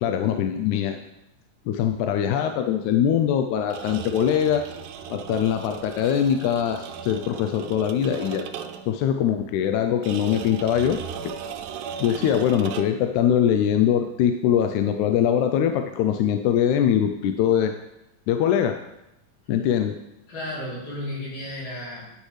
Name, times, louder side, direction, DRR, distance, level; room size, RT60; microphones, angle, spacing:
voice 1, 0.0-1.0 1.7-4.7 5.1-8.5 8.9-11.0 12.0-17.7 18.3-18.8 19.5-20.0, left 9 dB, 80° left, 6 dB, 1.9 m, -22 dB
sound 1, 3.6-9.0 10.0-13.1, right 7 dB, 80° right, 2.0 m, -37 dB
voice 2, 20.3-22.1, left 1 dB, 60° left, -7 dB, 4.6 m, -33 dB
10.0 x 9.6 x 3.2 m, 0.90 s
omnidirectional pair, 3.7 m